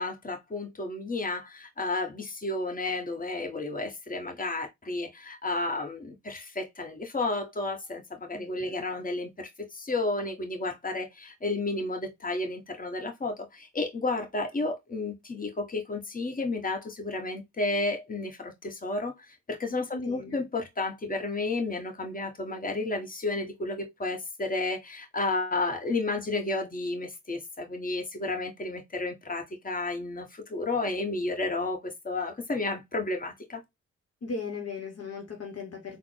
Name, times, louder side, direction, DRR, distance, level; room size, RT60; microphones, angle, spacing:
voice 1, 0.0-33.6, left 2 dB, 25° left, 1.2 m, -32 dB
voice 2, 8.3-8.9 19.9-20.5 34.2-36.0, left 4 dB, 50° left, 1.0 m, -38 dB
3.7 x 2.1 x 3.2 m
hypercardioid pair, 40°, 32 cm